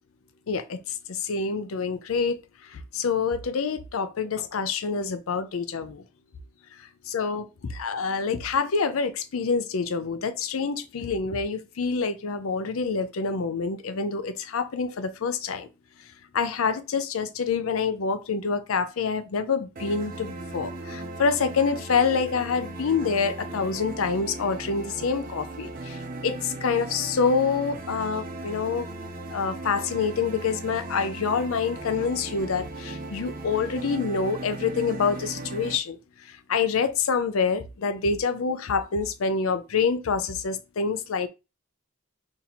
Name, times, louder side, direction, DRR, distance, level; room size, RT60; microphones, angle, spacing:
voice 1, 0.5-2.4 2.7-6.0 7.1-7.5 7.7-15.7 16.3-28.9 29.3-36.0 36.5-41.3, left 5 dB, 75° left, 0.5 m, -27 dB
sound 1, 19.8-35.8, right 2 dB, 40° right, 0.5 m, -37 dB
2.9 x 2.6 x 4.1 m
head